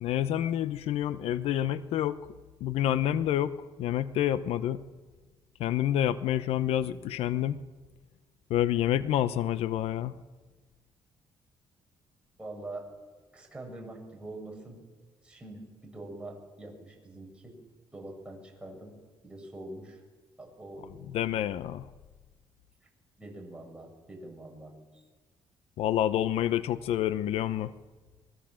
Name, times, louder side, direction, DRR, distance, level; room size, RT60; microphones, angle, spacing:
voice 1, 0.0-2.2 2.6-4.8 5.6-7.6 8.5-10.1 21.1-21.9 25.8-27.7, left 11 dB, 85° left, 14 dB, 0.8 m, -28 dB
voice 2, 12.4-12.8 13.3-14.8 15.2-17.6 17.9-18.9 19.2-20.0 20.4-21.0 23.2-24.7, right 2 dB, 10° right, 0 dB, 7.1 m, -44 dB
25.0 x 21.5 x 7.5 m, 1.3 s
cardioid pair, 115°, 10 cm